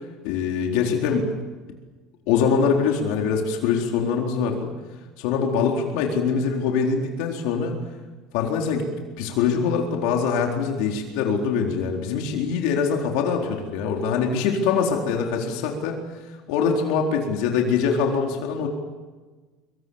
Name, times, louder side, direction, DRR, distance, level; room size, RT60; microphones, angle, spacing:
voice 1, 0.2-1.3 2.3-4.7 5.2-7.8 8.3-8.9 9.2-16.0 16.5-18.7, left 6 dB, 70° left, 1 dB, 4.1 m, -23 dB
25.5 x 24.5 x 7.3 m, 1.3 s
cardioid pair, 170°, 0 cm